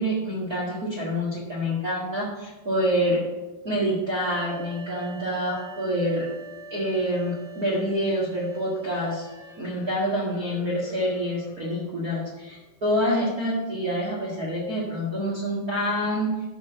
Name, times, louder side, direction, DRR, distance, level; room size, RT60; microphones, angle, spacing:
voice 1, 0.0-3.2 3.6-6.3 6.7-9.3 9.6-16.3, equal, 80° right, -5 dB, 0.8 m, -27 dB
sound 1, 4.1-12.7, equal, 85° left, 3.3 m, -45 dB
13.0 x 4.3 x 6.2 m, 1.1 s
omnidirectional pair, 5.1 m